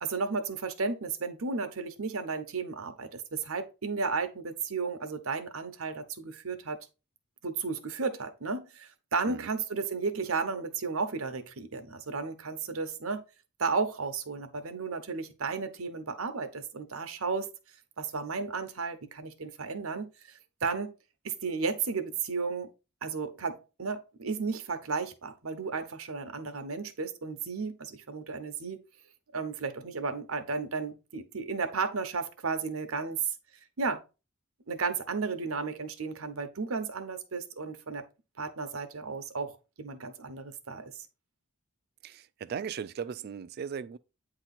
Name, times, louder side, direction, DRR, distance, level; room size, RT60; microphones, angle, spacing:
voice 1, 0.0-6.8 7.4-13.2 13.6-17.5 18.0-20.9 21.2-22.7 23.0-28.8 29.3-33.2 33.8-34.0 34.7-38.0 38.4-40.9, right 4 dB, 85° right, 0.9 m, -33 dB
voice 2, 42.0-44.0, right 7 dB, 50° right, 0.3 m, -37 dB
8.8 x 2.9 x 4.1 m
head